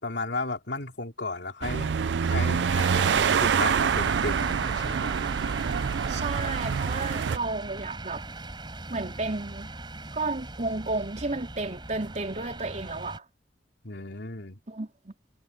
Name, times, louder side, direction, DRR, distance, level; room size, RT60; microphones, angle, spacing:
voice 1, 0.0-5.1 13.8-14.6, left 3 dB, 85° left, 2.9 m, -35 dB
sound 1, 1.6-7.4, right 6 dB, 90° right, 0.4 m, -26 dB
sound 2, 2.7-13.2, right 2 dB, 30° right, 4.7 m, -39 dB
voice 2, 6.1-8.2 8.9-9.7 10.1-13.2 14.7-15.1, right 3 dB, 45° right, 3.2 m, -32 dB
head